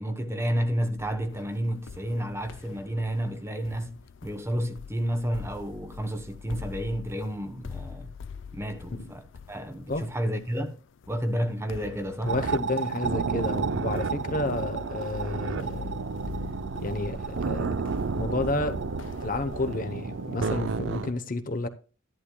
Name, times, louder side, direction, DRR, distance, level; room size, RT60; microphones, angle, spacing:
voice 1, 0.0-8.2 8.5-10.8 11.1-12.4, equal, 15° right, 1.0 m, -31 dB
sound 1, 1.0-20.5, left 5 dB, 70° left, 0.4 m, -45 dB
voice 2, 12.2-15.9 16.8-17.8 18.1-18.8 19.2-21.7, left 2 dB, 45° left, 0.9 m, -31 dB
sound 2, 12.3-21.1, right 4 dB, 70° right, 0.6 m, -31 dB
12.0 x 11.0 x 2.3 m
head